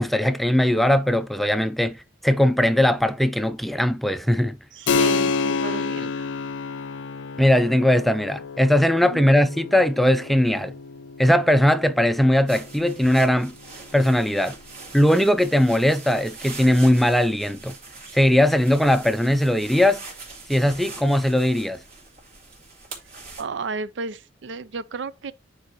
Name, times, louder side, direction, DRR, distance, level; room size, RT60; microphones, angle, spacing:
voice 1, 0.0-2.0 2.2-4.6 7.4-10.7 11.2-13.5 13.9-14.6 14.9-17.8 18.1-20.0 20.5-21.8, left 1 dB, ahead, 0.4 m, -19 dB
voice 2, 4.7-6.3 9.0-9.3 23.4-25.3, right 4 dB, 70° right, 0.5 m, -33 dB
Keyboard (musical), 4.9-15.1, left 4 dB, 85° left, 0.5 m, -30 dB
sound 1, 12.5-23.4, right 3 dB, 50° right, 2.5 m, -42 dB
9.2 x 4.8 x 3.0 m
head